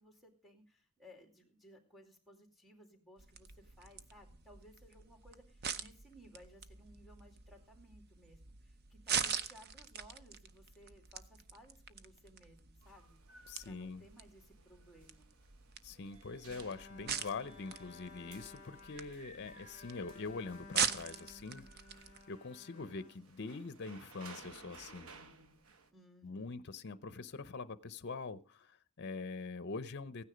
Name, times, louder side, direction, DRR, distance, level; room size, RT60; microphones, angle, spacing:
voice 1, 0.0-15.3 25.9-26.6, equal, ahead, 3 dB, 2.6 m, -60 dB
sound 1, 3.2-22.2, right 7 dB, 50° right, 0.7 m, -43 dB
sound 2, 12.8-25.9, right 4 dB, 70° right, 1.1 m, -59 dB
voice 2, 13.5-14.0 15.8-21.7 22.3-25.1 26.2-30.2, left 4 dB, 50° left, 15 dB, 0.7 m, -44 dB
Bowed string instrument, 16.4-23.8, left 3 dB, 35° left, 1.0 m, -56 dB
15.5 x 9.7 x 5.1 m, 0.38 s
head